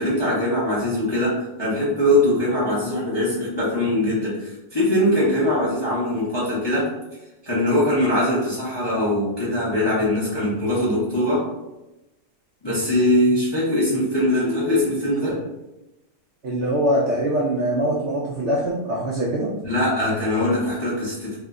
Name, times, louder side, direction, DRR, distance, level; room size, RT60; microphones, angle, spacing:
voice 1, 0.0-6.9 7.4-11.5 12.6-15.4 19.6-21.4, left 1 dB, 25° left, -8 dB, 0.6 m, -22 dB
voice 2, 16.4-19.5, right 1 dB, 75° right, -3 dB, 0.6 m, -23 dB
3.0 x 2.1 x 3.6 m, 0.98 s
omnidirectional pair, 1.8 m